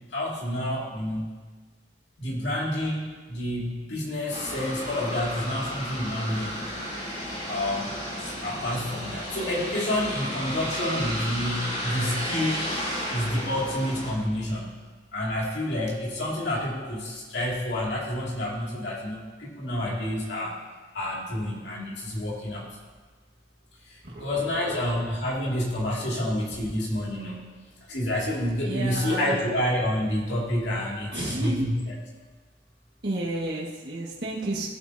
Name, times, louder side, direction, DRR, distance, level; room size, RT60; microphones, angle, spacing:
voice 1, 0.1-1.3 2.2-6.5 7.5-7.9 8.2-12.6 13.1-14.8 15.1-20.6 20.9-22.8 23.9-27.5 27.9-31.7, left 1 dB, 80° left, -4 dB, 2.3 m, -29 dB
sound 1, 4.3-14.1, equal, 35° left, 3.0 m, -33 dB
voice 2, 24.0-25.1 26.5-26.6 28.6-29.4 31.1-31.7 33.0-34.7, right 1 dB, 65° right, -5 dB, 1.6 m, -32 dB
16.5 x 8.4 x 2.7 m, 1.4 s
head